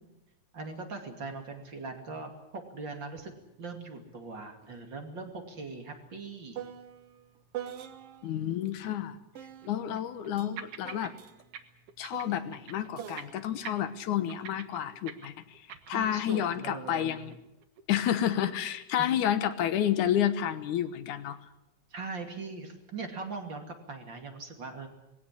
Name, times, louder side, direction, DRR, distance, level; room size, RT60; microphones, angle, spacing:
voice 1, 0.5-3.3 3.6-6.6 15.9-17.2 19.0-19.1 21.9-24.9, right 4 dB, 40° right, 4 dB, 3.0 m, -40 dB
sound 1, 3.2-3.3 3.7-8.4 9.3-14.9 15.7-16.2, right 10 dB, 60° right, 2.0 m, -46 dB
sound 2, 4.4-4.6 4.9-5.0 5.6-5.7 8.9-9.0 9.6-10.3 10.6-11.1 11.4-11.6 11.9-12.9 13.2-13.4 13.6-16.2 16.5-16.7 17.0-17.3 17.6-18.8, right 9 dB, 90° right, 2.9 m, -45 dB
voice 2, 8.2-9.2 9.7-11.1 12.0-15.6 15.9-17.4 17.9-21.4, left 10 dB, 90° left, 12 dB, 2.6 m, -30 dB
20.5 x 17.0 x 9.9 m, 0.92 s
omnidirectional pair, 3.4 m